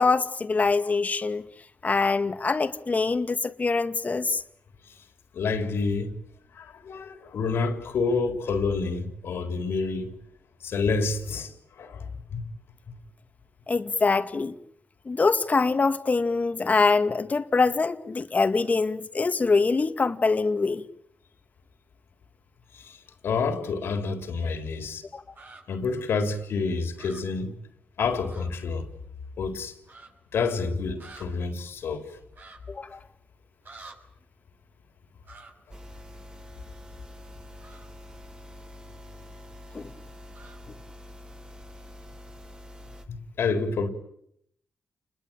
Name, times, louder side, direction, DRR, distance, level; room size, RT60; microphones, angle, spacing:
voice 1, 0.0-1.4 1.8-4.4 13.7-14.5 15.1-20.8 25.1-25.2 32.7-33.0 39.7-39.9, left 4 dB, 40° left, 2.1 m, -24 dB
voice 2, 5.3-6.1 6.5-10.1 10.6-11.5 11.8-12.4 22.7-23.0 23.2-25.0 25.7-27.5 28.0-28.9 29.4-29.7 30.3-32.1 43.1-43.9, left 4 dB, 80° left, 3.9 m, -28 dB
sound 1, 25.3-25.6 26.9-27.2 28.3-28.5 28.8-28.9 29.8-30.1 31.0-31.2 32.3-32.6 33.6-33.9 35.2-35.5 37.6-37.9 40.3-40.6, right 3 dB, 55° right, 6.3 m, -47 dB
sound 2, 35.7-43.0, left 1 dB, 25° right, 4.2 m, -46 dB
29.0 x 21.5 x 9.1 m
cardioid pair, 70°, 4 cm